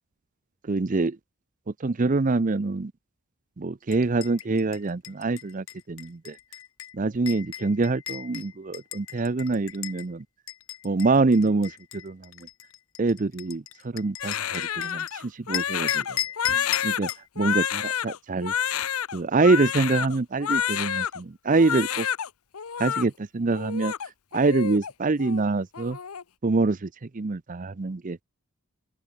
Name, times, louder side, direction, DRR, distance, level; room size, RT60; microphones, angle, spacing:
voice 1, 0.7-1.2 1.8-2.9 3.6-6.4 6.9-10.2 10.8-12.2 13.0-16.0 16.8-17.1 17.4-18.5 19.1-22.1 22.8-23.9 24.3-26.0 26.4-26.9 27.1-28.2, right 3 dB, 35° right, 0.5 m, -25 dB
sound 1, 3.9-10.0 10.5-15.1 15.5-17.3, left 12 dB, 60° left, 1.1 m, -36 dB
Crying sobbing, 14.2-21.2 21.5-22.3 22.5-23.0 23.5-24.9 25.2-25.4 25.7-26.2, left 9 dB, 75° left, 0.8 m, -29 dB
open air
head